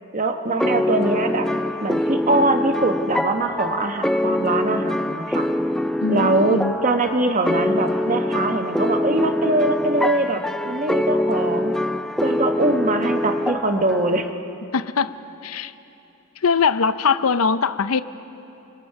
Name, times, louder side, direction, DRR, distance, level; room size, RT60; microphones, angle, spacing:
voice 1, 0.1-1.5 1.8-5.5 6.1-11.8 12.2-14.3, right 2 dB, 35° right, 6 dB, 1.1 m, -22 dB
sound 1, 0.6-14.3, left 1 dB, 5° left, 0.4 m, -24 dB
voice 2, 6.0-6.7 14.7-15.1 15.4-15.7 16.4-18.0, left 5 dB, 85° left, 13 dB, 0.6 m, -21 dB
28.5 x 25.0 x 4.8 m, 2.9 s
head